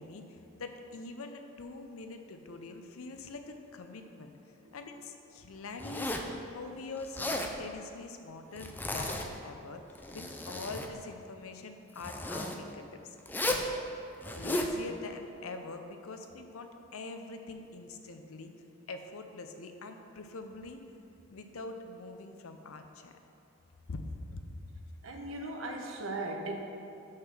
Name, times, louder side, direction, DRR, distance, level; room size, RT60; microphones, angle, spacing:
voice 1, 0.0-4.3 4.7-6.1 6.5-9.8 10.1-13.2 13.4-13.6 14.4-18.5 18.9-20.8 21.3-23.1 23.9-24.0 24.3-24.5, left 3 dB, 90° left, 6 dB, 0.6 m, -44 dB
Zipper (clothing), 5.8-6.3 7.0-7.5 8.6-9.4 9.9-10.9 12.0-12.6 13.3-13.7 14.2-14.7, left 1 dB, 10° left, 0.4 m, -34 dB
voice 2, 25.0-26.6, right 2 dB, 70° right, 2 dB, 0.9 m, -38 dB
6.4 x 5.7 x 6.0 m, 2.7 s
head